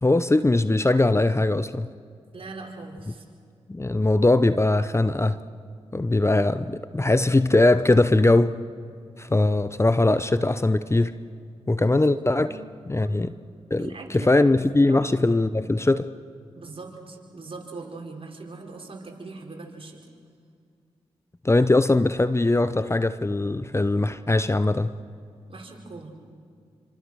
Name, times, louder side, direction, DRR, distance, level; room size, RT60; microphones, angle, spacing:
voice 1, 0.0-1.9 3.7-5.4 5.9-8.6 9.2-11.1 11.7-12.5 12.9-13.3 13.7-16.1 21.4-24.9, left 2 dB, 25° left, 0.8 m, -21 dB
voice 2, 2.3-3.2 11.8-12.0 12.4-12.6 13.0-13.2 13.8-14.3 14.9-15.1 16.5-20.0 25.5-26.1, right 3 dB, 50° right, 5.0 m, -40 dB
27.0 x 25.0 x 6.5 m
supercardioid pair, 40°, 12 cm